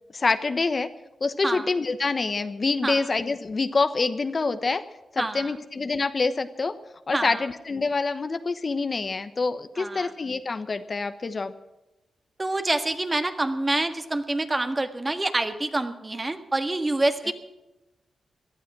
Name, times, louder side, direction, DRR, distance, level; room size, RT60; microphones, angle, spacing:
voice 1, 0.1-0.9 1.2-4.8 5.1-6.7 7.1-11.5 17.2-17.3, left 4 dB, 50° left, 11 dB, 1.0 m, -26 dB
voice 2, 5.2-5.5 7.1-7.4 9.8-10.1 12.4-17.3, right 2 dB, 25° right, 8 dB, 1.6 m, -27 dB
18.0 x 12.0 x 6.1 m, 0.99 s
cardioid pair, 50°, 0 cm